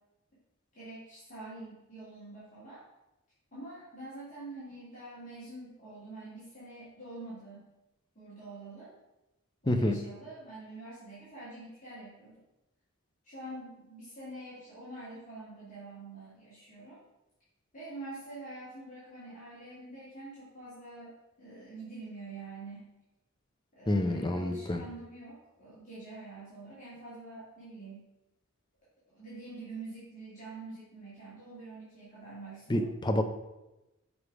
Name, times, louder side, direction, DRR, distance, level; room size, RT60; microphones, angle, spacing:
voice 1, 0.7-2.8 3.5-7.6 8.1-8.9 9.6-12.4 13.2-17.0 17.7-22.9 23.7-28.1 29.1-32.9, right 2 dB, 35° left, -11 dB, 2.7 m, -46 dB
voice 2, 9.7-10.0 23.9-24.8 32.7-33.2, left 1 dB, 20° left, 6 dB, 0.5 m, -28 dB
7.3 x 4.9 x 4.7 m, 0.97 s
head